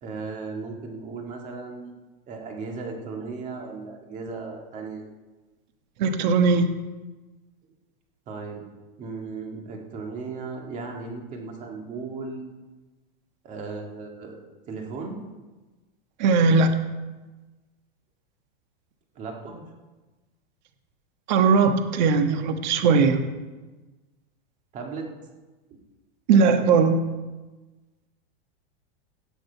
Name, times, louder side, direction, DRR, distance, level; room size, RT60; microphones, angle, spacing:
voice 1, 0.0-1.9 2.3-5.0 8.3-8.6 9.0-12.4 13.4-14.4 14.7-15.2 19.2-19.6 24.7-25.1 25.7-25.8, right 4 dB, 25° right, 2 dB, 1.9 m, -36 dB
voice 2, 6.0-6.7 16.2-16.7 21.3-23.2 26.3-27.0, right 4 dB, 45° right, 7 dB, 1.4 m, -19 dB
17.0 x 7.9 x 4.6 m, 1.2 s
supercardioid pair, 165°, 31 cm